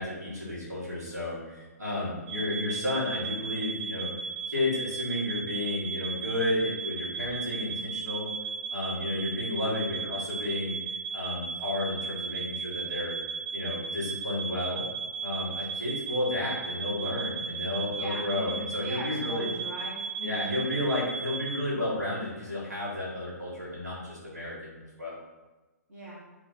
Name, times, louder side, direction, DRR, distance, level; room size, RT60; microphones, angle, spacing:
voice 1, 0.0-4.1 4.5-8.3 8.7-10.8 11.1-13.1 13.5-14.8 15.2-19.5 20.2-25.1, left 1 dB, 80° right, -8 dB, 1.3 m, -32 dB
sound 1, 2.3-21.6, right 5 dB, 25° right, 0.6 m, -36 dB
voice 2, 17.9-20.7 25.9-26.2, equal, 55° right, -9 dB, 1.1 m, -40 dB
2.4 x 2.3 x 3.9 m, 1.2 s
figure-of-eight pair, 120°, 9 cm